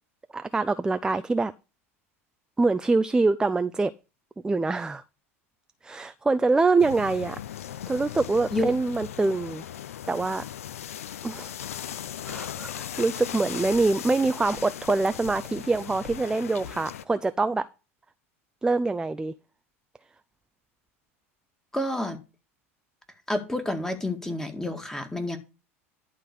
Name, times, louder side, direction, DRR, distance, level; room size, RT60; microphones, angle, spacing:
voice 1, 0.3-1.5 2.6-3.9 4.4-5.0 5.8-7.4 7.9-9.6 10.1-10.4 11.2-11.5 12.2-17.6 18.6-19.3, right 3 dB, 10° right, 12 dB, 0.4 m, -25 dB
sound 1, 6.8-17.0, left 10 dB, 75° left, 0.6 m, -38 dB
sound 2, 13.7-14.1 14.4-16.4 16.6-16.8, left 5 dB, 60° left, 3.3 m, -48 dB
voice 2, 21.7-22.2 23.3-25.4, left 1 dB, 5° left, 7 dB, 1.9 m, -29 dB
11.5 x 4.0 x 6.7 m, 0.31 s
hypercardioid pair, 85°, 8 cm